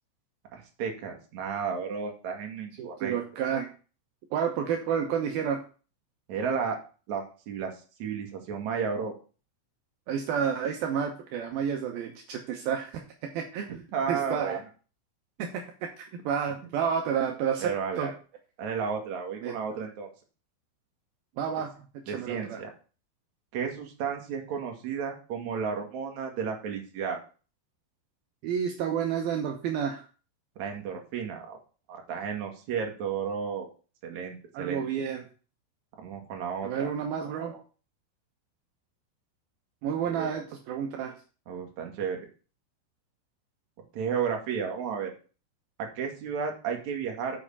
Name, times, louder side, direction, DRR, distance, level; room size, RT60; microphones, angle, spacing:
voice 1, 0.5-3.2 6.3-6.8 7.1-7.7 8.0-9.1 13.9-14.6 17.6-18.1 18.6-20.1 22.1-22.7 23.5-27.2 30.6-31.6 31.9-33.7 34.0-34.8 36.0-36.9 40.1-40.3 41.5-42.2 43.9-45.1 45.8-47.4, right 6 dB, 55° right, 2 dB, 2.3 m, -33 dB
voice 2, 2.8-3.7 4.3-5.6 10.1-13.7 14.1-14.6 15.4-18.1 19.4-19.6 21.4-21.7 22.1-22.6 28.4-30.1 34.5-35.2 36.6-37.6 39.8-41.2, right 7 dB, 80° right, 3 dB, 2.2 m, -30 dB
7.7 x 5.7 x 7.0 m, 0.36 s
omnidirectional pair, 5.6 m